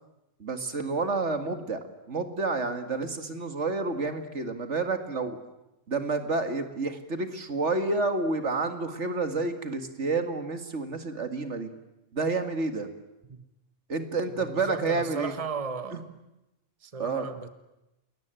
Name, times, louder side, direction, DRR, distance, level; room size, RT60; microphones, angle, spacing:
voice 1, 0.4-5.4 5.9-11.7 12.1-12.9 13.9-15.3 17.0-17.3, right 3 dB, 65° right, 7 dB, 2.3 m, -29 dB
voice 2, 14.4-16.1 16.8-17.5, right 5 dB, 30° right, 9 dB, 1.3 m, -35 dB
29.0 x 21.5 x 9.1 m, 0.95 s
omnidirectional pair, 1.3 m